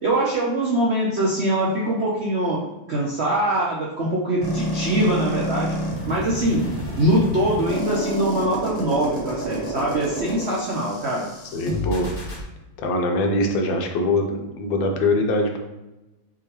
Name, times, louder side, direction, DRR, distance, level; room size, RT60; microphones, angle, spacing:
voice 1, 0.0-2.6 2.9-5.8 6.1-6.7 7.0-11.3, right 1 dB, 70° right, -4 dB, 0.6 m, -23 dB
sound 1, 4.4-12.4, right 1 dB, 10° left, 1.2 m, -29 dB
voice 2, 11.5-12.1 12.8-15.6, left 2 dB, 75° left, 3 dB, 1.4 m, -22 dB
6.2 x 2.9 x 2.9 m, 0.99 s
omnidirectional pair, 2.2 m